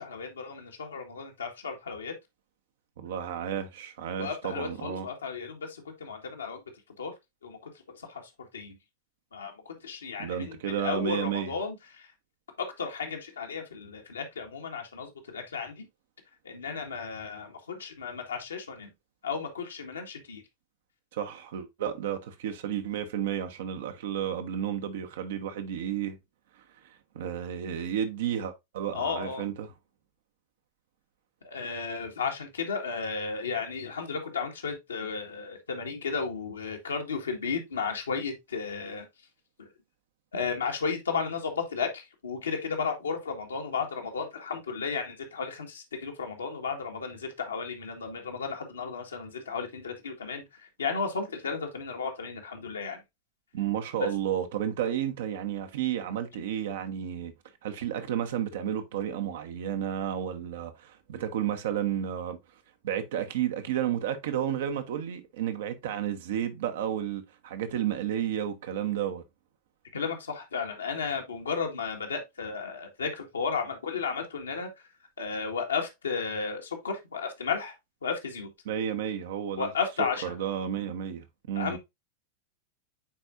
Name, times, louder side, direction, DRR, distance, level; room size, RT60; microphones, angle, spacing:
voice 1, 0.0-2.1 4.2-6.6 7.0-7.1 7.4-7.6 8.0-8.2 8.5-8.8 9.3-12.1 12.6-15.9 16.4-18.9 19.2-20.4 28.9-29.4 31.4-39.0 39.6-39.7 40.3-53.0 54.0-54.1 69.9-74.7 75.2-77.7 78.0-78.5 79.6-80.3 81.5-81.8, left 5 dB, 70° left, 1.7 m, -34 dB
voice 2, 3.0-5.1 10.2-11.5 21.1-26.2 27.1-29.7 53.5-57.3 57.6-62.4 62.8-69.2 78.6-79.7 80.2-81.8, right 10 dB, 55° right, 1.1 m, -32 dB
8.8 x 4.5 x 2.6 m
figure-of-eight pair, 90°, 0 cm